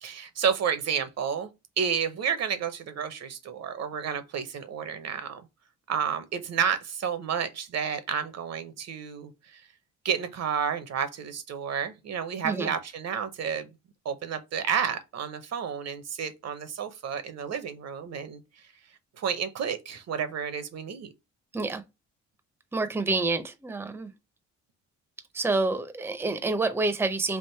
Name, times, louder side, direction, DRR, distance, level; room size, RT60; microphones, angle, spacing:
voice 1, 0.0-1.5 1.8-5.4 5.9-9.6 10.0-13.7 14.0-18.4 19.2-21.1, right 7 dB, 60° right, 0.8 m, -31 dB
voice 2, 22.7-24.1 25.3-27.4, right 3 dB, 10° right, 0.6 m, -28 dB
3.6 x 2.5 x 4.3 m
cardioid pair, 90°, 30 cm